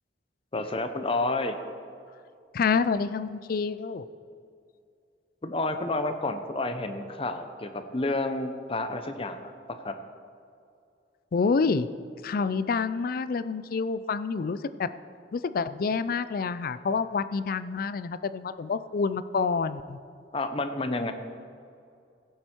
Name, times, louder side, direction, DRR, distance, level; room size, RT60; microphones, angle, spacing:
voice 1, 0.5-1.5 5.4-9.5 9.8-9.9 20.3-21.1, left 2 dB, 30° left, 8 dB, 0.8 m, -30 dB
voice 2, 2.5-4.0 11.3-11.9 12.2-14.9 15.3-20.0, left 5 dB, 55° left, 14 dB, 0.4 m, -28 dB
16.0 x 7.9 x 4.5 m, 2.4 s
head